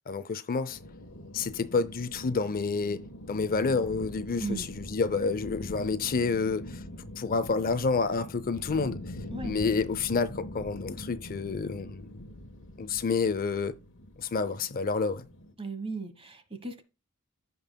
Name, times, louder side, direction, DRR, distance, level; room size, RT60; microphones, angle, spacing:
voice 1, 0.1-0.8 1.3-6.8 7.2-9.0 9.4-12.2 12.8-13.7 14.2-15.2, left 4 dB, 40° left, 0.5 m, -29 dB
sound 1, 0.7-15.5, left 1 dB, 60° left, 1.3 m, -43 dB
voice 2, 15.6-16.8, right 3 dB, 25° right, 1.2 m, -36 dB
15.0 x 5.4 x 2.2 m
head